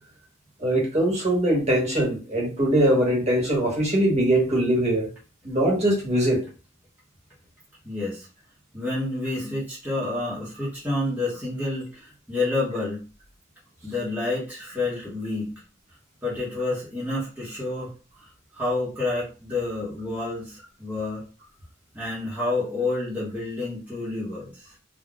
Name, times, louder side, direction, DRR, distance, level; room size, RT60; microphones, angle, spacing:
voice 1, 0.6-5.1 5.4-6.5, right 1 dB, 35° right, -3 dB, 1.2 m, -22 dB
voice 2, 7.8-8.3 8.7-13.0 13.8-15.5 16.2-17.9 18.2-21.2 21.9-24.7, left 2 dB, 10° right, -8 dB, 0.9 m, -29 dB
3.7 x 2.2 x 2.3 m, 0.33 s
head